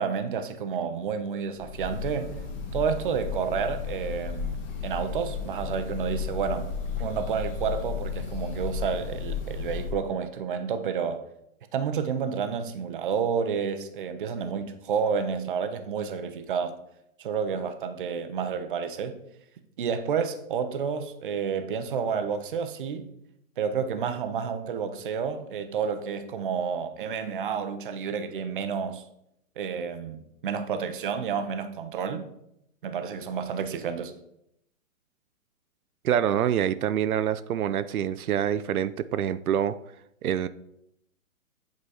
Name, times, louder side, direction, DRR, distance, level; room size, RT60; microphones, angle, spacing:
voice 1, 0.0-2.4 2.7-6.7 7.0-11.3 11.7-16.8 17.2-19.2 19.8-23.1 23.6-29.0 29.6-32.3 32.8-34.1, right 6 dB, 40° right, 0.6 m, -30 dB
Breathing / Bird, 1.5-10.1, left 6 dB, 30° left, 1.4 m, -34 dB
voice 2, 36.0-39.8 40.2-40.5, right 9 dB, 85° right, 0.6 m, -26 dB
8.3 x 3.9 x 4.8 m
hypercardioid pair, 160°, 42 cm